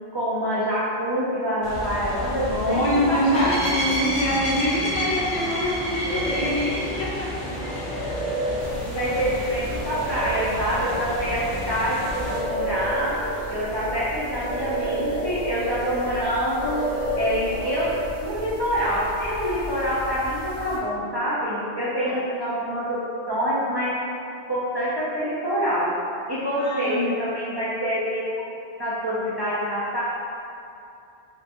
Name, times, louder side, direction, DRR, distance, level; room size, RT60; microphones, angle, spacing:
voice 1, 0.1-3.7 8.8-13.2 13.5-16.8 17.1-23.0 23.3-23.9 24.5-25.9 26.3-28.2 28.8-30.0, equal, 45° right, -10 dB, 0.3 m, -26 dB
sound 1, 1.6-12.4, equal, 30° left, 0.6 m, -31 dB
voice 2, 2.5-8.3 22.1-22.2 26.6-27.1, left 1 dB, 70° left, -4 dB, 0.9 m, -25 dB
sound 2, 6.0-7.0 7.4-14.0 14.3-16.3 16.5-18.0, right 1 dB, 15° right, 1.2 m, -31 dB
sound 3, 8.6-20.8, equal, 80° right, 0.9 m, -39 dB
3.2 x 2.9 x 2.6 m, 2.6 s
omnidirectional pair, 1.1 m